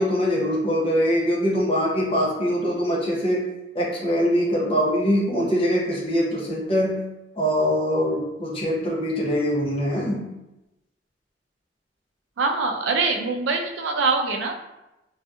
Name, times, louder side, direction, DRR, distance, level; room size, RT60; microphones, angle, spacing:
voice 1, 0.0-3.4 3.7-7.0 7.4-10.3, equal, 30° left, -4 dB, 0.6 m, -23 dB
voice 2, 12.4-14.5, right 4 dB, 75° right, 4 dB, 0.3 m, -23 dB
2.6 x 2.3 x 2.3 m, 0.96 s
head